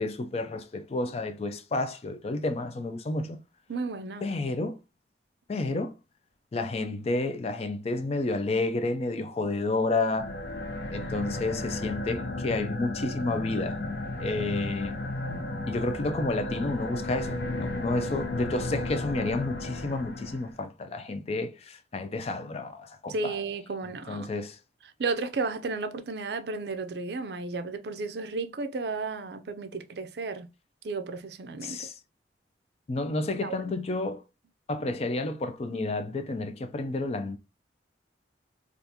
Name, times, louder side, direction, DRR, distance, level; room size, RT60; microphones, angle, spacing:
voice 1, 0.0-3.4 4.2-4.8 5.5-5.9 6.5-10.3 10.9-13.8 14.2-15.0 15.7-23.4 24.1-24.6 31.6-32.0 32.9-34.2 34.7-37.4, left 2 dB, 35° left, 0.4 m, -30 dB
voice 2, 3.7-4.2 15.3-15.5 23.1-24.3 25.0-30.5 30.8-31.9 33.4-33.6, right 3 dB, 65° right, 0.5 m, -33 dB
sound 1, 10.1-20.6, left 2 dB, 80° left, 0.7 m, -34 dB
3.4 x 2.4 x 2.7 m
head